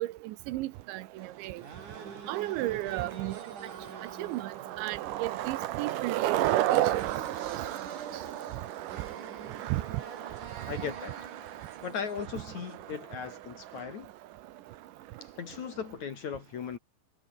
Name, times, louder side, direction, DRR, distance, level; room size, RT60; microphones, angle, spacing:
voice 1, 0.0-1.6 2.3-3.4 4.2-6.8 7.4-7.6 9.7-9.8, right 18 dB, 85° right, 3.2 m, -34 dB
Skateboard, 0.8-15.9, right 14 dB, 70° right, 2.0 m, -35 dB
sound 1, 1.2-13.0, right 5 dB, 45° right, 5.4 m, -46 dB
voice 2, 10.7-11.2 11.8-14.1 15.2-16.8, left 7 dB, 55° left, 2.5 m, -38 dB
omnidirectional pair, 5.2 m